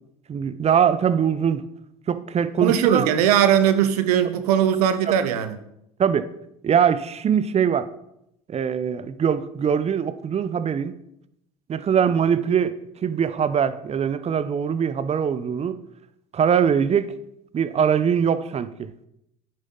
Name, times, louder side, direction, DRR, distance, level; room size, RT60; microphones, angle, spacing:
voice 1, 0.3-1.6 2.1-3.1 6.0-6.3 6.6-7.9 8.5-10.9 11.7-12.7 13.0-15.8 16.3-17.1 17.5-18.9, right 7 dB, 35° right, 0.8 m, -22 dB
voice 2, 2.6-5.6, right 9 dB, 80° right, 0.9 m, -19 dB
9.8 x 9.7 x 3.9 m
hypercardioid pair, 70°, 20 cm